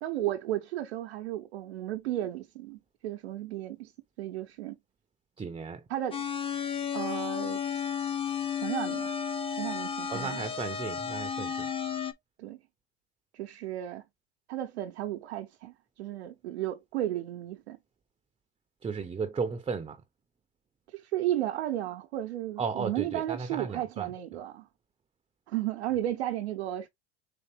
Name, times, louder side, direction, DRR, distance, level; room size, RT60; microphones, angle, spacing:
voice 1, 0.0-3.9 4.2-4.8 5.9-6.2 6.9-7.6 8.6-9.1 9.6-10.4 12.4-12.6 13.3-14.0 14.5-17.8 20.9-24.7 25.5-26.9, right 13 dB, 85° right, 0.7 m, -34 dB
voice 2, 5.4-5.8 10.1-11.7 18.8-20.0 22.6-24.1, right 5 dB, 15° right, 0.6 m, -34 dB
sound 1, 6.1-12.1, left 7 dB, 15° left, 0.7 m, -33 dB
4.3 x 3.2 x 2.9 m
hypercardioid pair, 85°, 32 cm